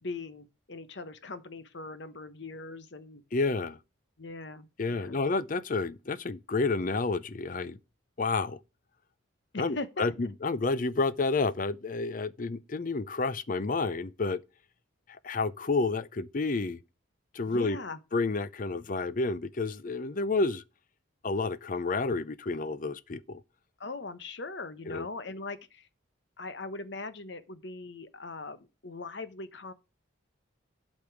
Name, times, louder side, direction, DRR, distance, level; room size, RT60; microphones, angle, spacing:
voice 1, 0.0-3.2 4.2-5.2 9.5-10.1 17.5-18.0 23.8-25.9 26.4-29.7, left 3 dB, 60° left, 1.0 m, -40 dB
voice 2, 3.3-3.8 4.8-7.8 8.2-8.6 9.6-14.4 15.2-16.8 17.3-17.8 18.1-20.6 21.2-23.4 24.9-25.1, left 3 dB, 45° left, 0.5 m, -30 dB
8.5 x 5.3 x 6.0 m
head